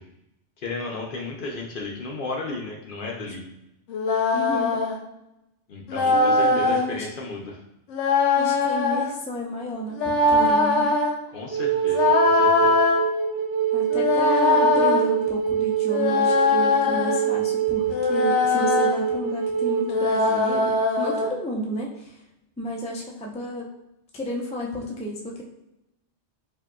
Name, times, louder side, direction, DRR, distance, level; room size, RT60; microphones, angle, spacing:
voice 1, 0.6-3.4 5.7-7.6 11.3-12.8, left 3 dB, 55° left, 0 dB, 0.6 m, -34 dB
sound 1, 3.9-5.0 5.9-6.9 7.9-9.1 9.9-11.1 11.9-13.0 13.9-15.0 15.9-17.3 17.9-19.0 19.9-21.3, left 3 dB, 75° left, 0.9 m, -21 dB
voice 2, 4.3-4.8 6.1-7.1 8.4-10.9 13.7-22.2 22.6-23.7 24.1-25.4, equal, 10° left, -2 dB, 0.3 m, -32 dB
Wind instrument woodwind instrument, 11.5-20.0, right 9 dB, 60° right, 0.7 m, -25 dB
4.9 x 2.7 x 2.3 m, 0.89 s
omnidirectional pair, 1.3 m